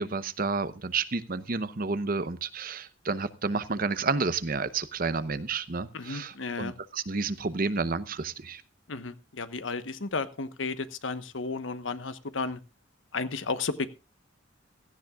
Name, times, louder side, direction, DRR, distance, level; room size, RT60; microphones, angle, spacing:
voice 1, 0.0-8.6, right 4 dB, 50° right, 14 dB, 0.8 m, -30 dB
voice 2, 5.9-6.8 8.9-12.6 13.1-13.9, left 4 dB, 80° left, 12 dB, 1.1 m, -33 dB
16.5 x 15.0 x 2.4 m, 0.29 s
head